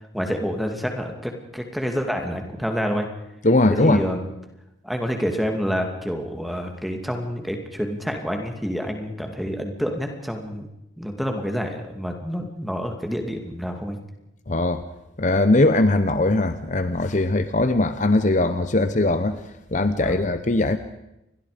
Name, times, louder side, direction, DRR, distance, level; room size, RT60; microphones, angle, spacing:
voice 1, 0.1-3.1 3.8-4.2 4.8-10.7 11.0-14.0 20.0-20.2, equal, ahead, 3 dB, 2.6 m, -28 dB
voice 2, 3.4-4.0 14.5-14.8 15.2-19.4 19.7-20.8, left 2 dB, 40° left, 10 dB, 0.9 m, -20 dB
29.0 x 22.5 x 5.2 m, 0.89 s
head